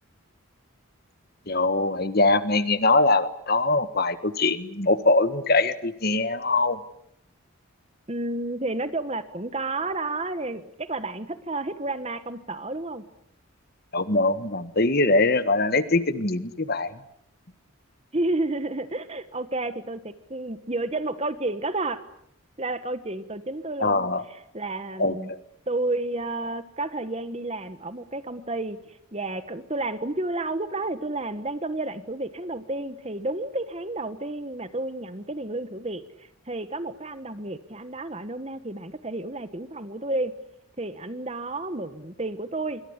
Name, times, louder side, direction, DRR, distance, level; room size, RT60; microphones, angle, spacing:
voice 1, 1.5-6.8 13.9-16.9 23.8-24.2 25.0-25.4, left 2 dB, 45° left, 12 dB, 1.6 m, -22 dB
voice 2, 8.1-13.0 18.1-22.0 22.6-25.3 25.7-40.3 40.8-42.8, right 2 dB, 30° right, 12 dB, 1.3 m, -31 dB
27.0 x 24.0 x 8.2 m, 0.74 s
head